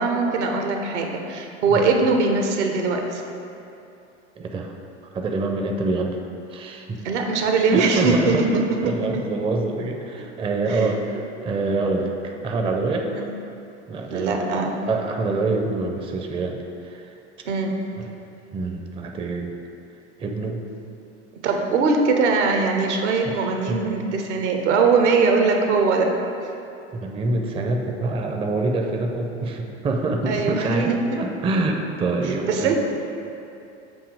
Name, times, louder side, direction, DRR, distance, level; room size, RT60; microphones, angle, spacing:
voice 1, 0.0-3.2 7.0-9.2 10.7-10.9 13.1-13.3 14.1-14.8 17.4-17.8 21.4-26.2 30.2-31.2 32.2-32.8, right 4 dB, 75° right, 3 dB, 0.8 m, -21 dB
voice 2, 4.4-4.7 5.1-6.2 6.5-7.0 7.7-13.1 13.9-14.6 14.9-17.1 18.0-18.1 18.5-19.5 20.2-20.6 23.2-23.8 27.0-32.8, right 3 dB, 15° right, 2 dB, 0.4 m, -26 dB
7.2 x 2.8 x 4.7 m, 2.7 s
hypercardioid pair, 80°, 36 cm